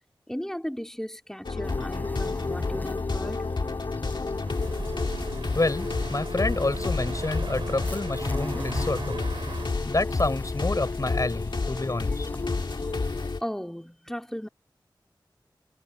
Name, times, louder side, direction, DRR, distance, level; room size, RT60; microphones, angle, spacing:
voice 1, 0.3-3.4 13.4-14.5, equal, 5° left, 3.7 m, -36 dB
sound 1, 1.4-13.4, left 3 dB, 65° left, 1.9 m, -30 dB
sound 2, 1.6-13.3, left 1 dB, 20° left, 5.8 m, -41 dB
sound 3, 4.4-9.7, right 4 dB, 90° right, 3.8 m, -39 dB
voice 2, 5.5-9.2 9.8-12.3, left 2 dB, 45° left, 6.6 m, -28 dB
wide cardioid pair, 55°, 8 cm